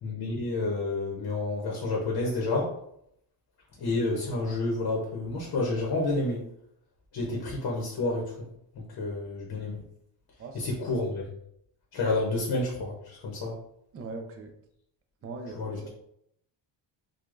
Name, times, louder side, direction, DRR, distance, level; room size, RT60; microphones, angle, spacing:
voice 1, 0.0-2.7 3.8-6.4 7.1-8.3 8.7-9.8 10.5-11.3 11.9-13.6 15.5-15.9, left 2 dB, 55° left, -2 dB, 0.9 m, -29 dB
voice 2, 13.9-14.5 15.2-15.9, right 3 dB, 30° right, 4 dB, 0.4 m, -40 dB
4.7 x 2.3 x 2.5 m, 0.74 s
cardioid pair, 165°, 47 cm